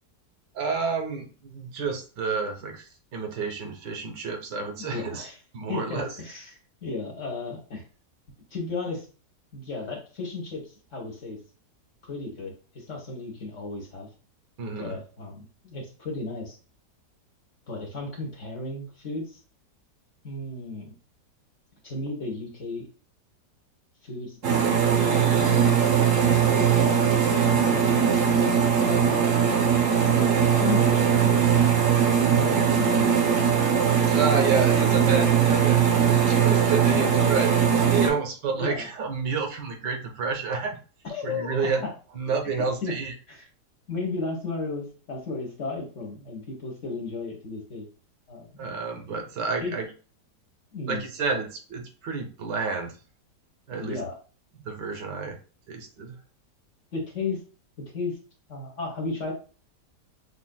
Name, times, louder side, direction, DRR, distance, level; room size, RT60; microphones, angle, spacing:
voice 1, 0.5-5.3 5.5-6.1 14.6-15.0 34.1-40.8 41.2-41.9 42.1-43.1 48.6-49.9 50.9-52.9 53.7-54.0 54.5-55.4 55.7-56.2, right 4 dB, 80° right, 4 dB, 1.5 m, -30 dB
voice 2, 4.8-5.3 5.7-6.5 6.8-7.8 8.5-9.1 9.5-11.4 12.0-14.1 14.8-16.6 17.7-19.4 20.2-20.9 21.8-22.9 24.0-24.7 25.0-28.1 28.5-29.2 30.2-31.9 32.2-33.3 36.9-37.3 37.7-37.9 38.6-38.9 41.0-41.7 42.5-42.9 43.3-43.4 43.9-47.9 48.3-48.7 49.6-49.8 50.7-51.1 53.7-54.1 56.9-57.4 57.8-58.2 58.5-59.3, left 3 dB, 50° left, -1 dB, 1.2 m, -34 dB
sound 1, 24.4-38.1, right 7 dB, 60° right, 0.9 m, -20 dB
5.9 x 2.5 x 2.2 m, 0.38 s
omnidirectional pair, 1.9 m